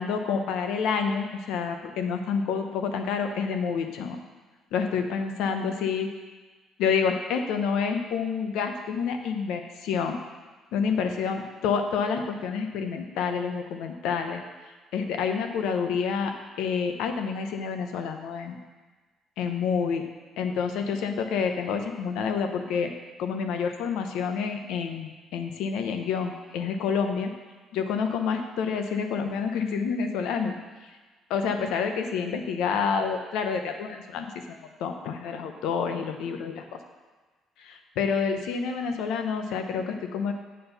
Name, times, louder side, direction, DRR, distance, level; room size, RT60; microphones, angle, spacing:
voice 1, 0.0-4.2 4.7-6.1 6.8-10.2 10.7-14.4 14.9-18.6 19.4-20.0 20.4-22.9 23.2-27.3 27.7-30.5 31.3-36.8 37.6-40.3, left 6 dB, 85° left, 5 dB, 0.9 m, -28 dB
7.7 x 4.5 x 6.7 m, 1.3 s
cardioid pair, 175°, 0 cm